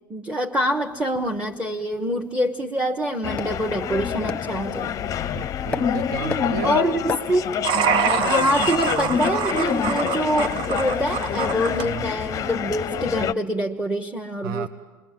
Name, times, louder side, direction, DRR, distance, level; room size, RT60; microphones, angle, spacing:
voice 1, 0.1-4.9 6.6-7.5 8.1-14.7, equal, 10° right, 2 dB, 1.1 m, -25 dB
sound 1, 0.8-9.7, left 2 dB, 10° left, 1.0 m, -39 dB
sound 2, 3.2-13.3, left 8 dB, 30° left, 0.6 m, -26 dB
voice 2, 5.3-6.8 11.8-12.1 14.4-14.7, right 7 dB, 70° right, 10 dB, 0.9 m, -32 dB
sound 3, 7.6-11.9, right 8 dB, 45° right, 0.8 m, -26 dB
27.0 x 21.5 x 7.5 m, 1.4 s
hypercardioid pair, 95°, 11 cm